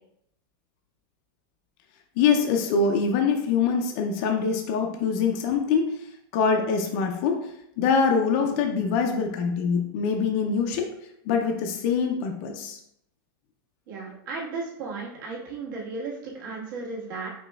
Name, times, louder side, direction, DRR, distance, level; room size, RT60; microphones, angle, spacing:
voice 1, 2.2-5.8 6.3-7.4 7.8-10.9 11.3-12.8, left 5 dB, 35° left, 3 dB, 0.4 m, -24 dB
voice 2, 13.9-17.3, right 3 dB, 60° right, -4 dB, 1.5 m, -35 dB
4.9 x 3.3 x 2.3 m, 0.74 s
supercardioid pair, 175°, 12 cm